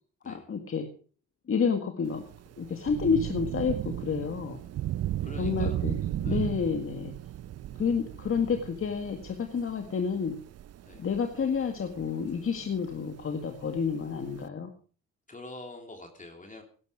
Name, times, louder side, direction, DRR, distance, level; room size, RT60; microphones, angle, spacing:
voice 1, 0.3-0.9 1.5-2.2 2.6-4.6 5.4-7.1 7.8-10.4 11.0-14.7, left 6 dB, 45° left, 5 dB, 1.9 m, -29 dB
Thunder / Rain, 2.0-14.5, right 13 dB, 55° right, 0.6 m, -36 dB
voice 2, 5.2-5.8 6.2-6.5 10.8-11.1 15.3-16.6, left 2 dB, 25° left, 4 dB, 3.1 m, -45 dB
17.0 x 12.0 x 5.0 m, 0.41 s
cardioid pair, 90°, 30 cm